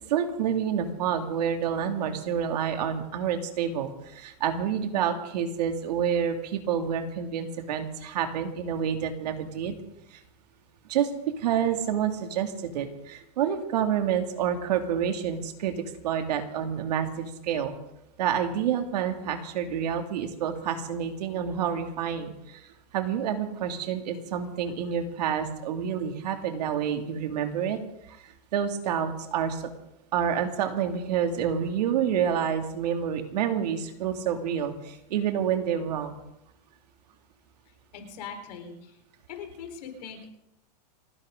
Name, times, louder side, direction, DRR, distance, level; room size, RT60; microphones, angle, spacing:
voice 1, 0.1-9.8 10.1-10.2 10.9-11.1 11.4-15.7 16.0-17.7 18.2-22.6 22.9-27.8 28.5-29.7 30.1-36.2, right 8 dB, 70° right, 5 dB, 2.5 m, -28 dB
voice 2, 37.9-38.9 39.3-40.3, left 6 dB, 70° left, 4 dB, 4.3 m, -41 dB
29.5 x 11.0 x 3.8 m, 0.83 s
supercardioid pair, 170°, 21 cm